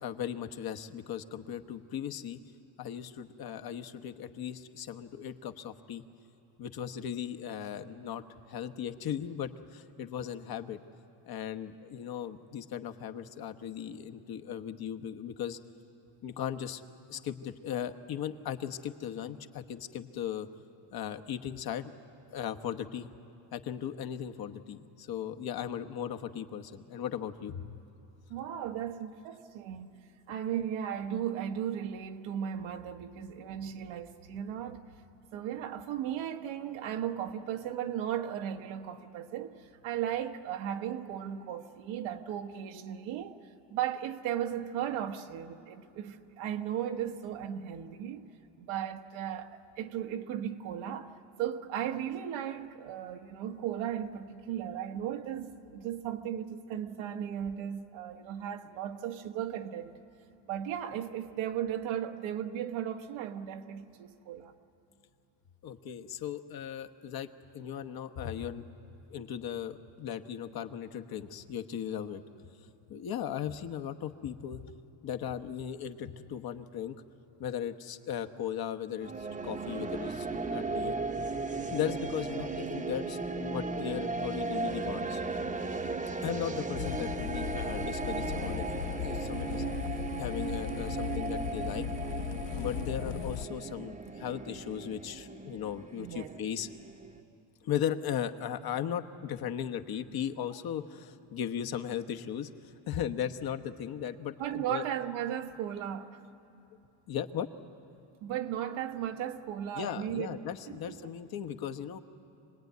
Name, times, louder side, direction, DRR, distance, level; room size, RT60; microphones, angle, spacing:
voice 1, 0.0-2.4 2.8-6.0 6.6-10.8 11.2-15.6 16.2-16.8 17.1-20.5 20.9-21.9 22.3-23.1 23.5-27.8 65.6-68.6 69.1-72.2 72.9-74.7 75.0-76.9 77.4-80.9 81.7-85.2 86.2-88.7 89.0-89.6 90.2-91.8 92.5-96.7 97.6-104.8 107.1-107.5 109.7-112.0, left 9 dB, 50° left, 1.2 m, -37 dB
voice 2, 28.3-29.9 30.3-34.8 35.3-43.4 43.7-48.3 48.6-49.5 49.8-51.1 51.4-60.0 60.4-64.5 96.0-96.3 104.4-106.2 108.2-110.4 110.7-111.0, right 10 dB, 85° right, 1.4 m, -36 dB
sound 1, 79.0-97.2, right 4 dB, 15° right, 0.9 m, -36 dB
sound 2, 86.8-93.4, left 11 dB, 70° left, 0.7 m, -37 dB
26.0 x 19.0 x 9.4 m
cardioid pair, 110°, 46 cm